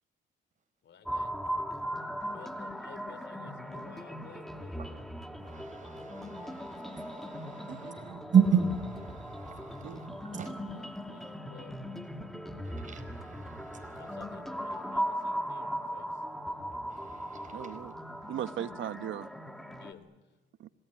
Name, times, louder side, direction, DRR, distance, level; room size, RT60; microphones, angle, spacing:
voice 1, 0.8-1.3 2.3-5.1 10.3-11.8 13.9-16.2 19.7-20.1, left 7 dB, 65° left, 3.4 m, -54 dB
sound 1, 1.1-19.9, equal, ahead, 2.4 m, -38 dB
voice 2, 5.4-11.3 12.6-14.2 16.9-17.9, right 7 dB, 40° right, 4.8 m, -32 dB
voice 3, 7.7-8.3 9.8-10.5 17.5-18.0 18.3-19.3 20.6-20.7, right 11 dB, 75° right, 1.1 m, -39 dB
26.5 x 19.5 x 10.0 m
cardioid pair, 90°, 20 cm